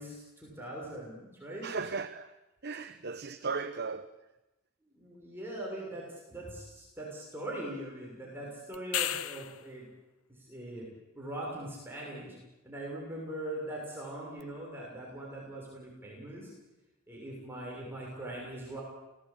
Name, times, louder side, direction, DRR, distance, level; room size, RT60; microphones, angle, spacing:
voice 1, 0.0-1.7 4.9-9.8 10.3-10.9 11.1-12.4 12.6-16.5 17.1-18.8, right 1 dB, 10° right, 6.6 m, -41 dB
voice 2, 1.6-2.3 2.6-4.1, right 4 dB, 50° right, 1.0 m, -36 dB
sound 1, 8.7-9.7 14.4-14.5, left 12 dB, 75° left, 0.9 m, -33 dB
29.5 x 18.0 x 8.8 m
head